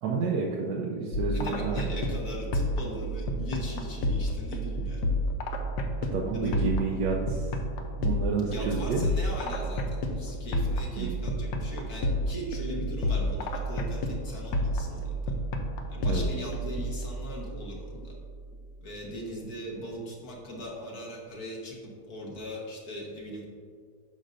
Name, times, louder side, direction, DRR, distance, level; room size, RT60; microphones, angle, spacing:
voice 1, 0.0-2.0 6.1-9.0 11.0-11.2 16.0-16.3, right 4 dB, 70° right, -2 dB, 1.2 m, -30 dB
sound 1, 1.1-18.7, equal, 80° left, 1.3 m, -31 dB
voice 2, 1.3-5.0 6.3-6.7 8.5-15.1 15.9-18.1 18.8-23.5, equal, 60° left, -2 dB, 1.8 m, -39 dB
9.4 x 6.3 x 2.6 m, 2.1 s
omnidirectional pair, 1.8 m